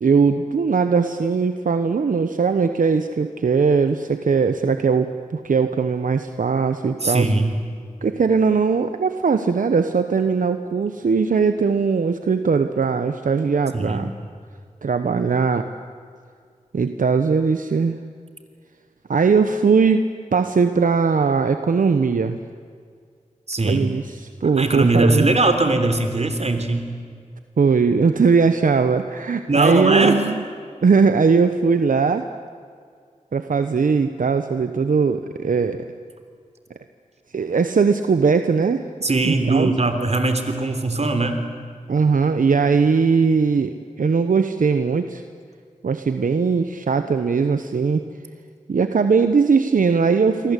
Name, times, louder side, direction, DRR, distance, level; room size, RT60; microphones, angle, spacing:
voice 1, 0.0-7.3 8.0-14.1 14.8-15.6 16.7-18.0 19.1-20.0 20.3-22.4 23.6-25.3 27.6-30.4 30.8-32.3 33.3-35.8 37.3-38.9 39.2-39.7 41.9-45.2 45.8-48.0 48.7-50.5, right 5 dB, 85° right, 9 dB, 1.0 m, -19 dB
voice 2, 7.0-7.6 13.7-14.0 23.5-23.9 24.6-26.9 29.5-30.2 39.0-41.4, right 2 dB, 55° right, 7 dB, 3.5 m, -20 dB
27.5 x 23.5 x 8.3 m, 2.1 s
cardioid pair, 50°, 13 cm